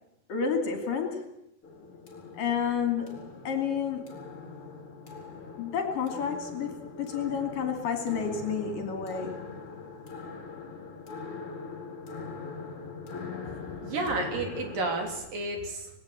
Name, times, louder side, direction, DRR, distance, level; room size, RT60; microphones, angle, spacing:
voice 1, 0.3-1.3 2.3-4.1 5.6-9.5, left 6 dB, 55° left, 4 dB, 4.2 m, -30 dB
Clock Horror (One Shot), 1.6-15.1, left 4 dB, 35° left, 4.8 m, -42 dB
voice 2, 13.8-15.9, right 2 dB, 60° right, 3 dB, 4.9 m, -31 dB
19.0 x 18.0 x 8.7 m, 0.80 s
omnidirectional pair, 4.7 m